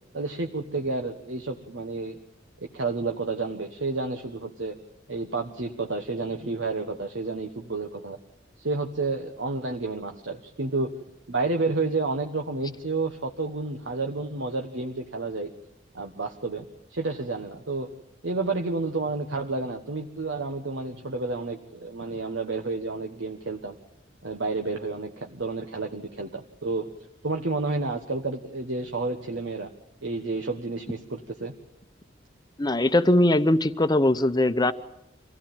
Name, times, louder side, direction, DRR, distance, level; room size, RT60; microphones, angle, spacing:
voice 1, 0.1-2.1 2.7-4.8 5.1-8.2 8.6-10.9 11.3-15.5 15.9-16.6 16.9-17.9 18.2-23.7 24.2-26.9 27.2-29.7 30.0-31.5, right 3 dB, 70° right, 3 dB, 1.4 m, -30 dB
voice 2, 32.6-34.7, left 1 dB, 20° left, 11 dB, 0.9 m, -21 dB
25.5 x 16.0 x 9.1 m, 0.86 s
head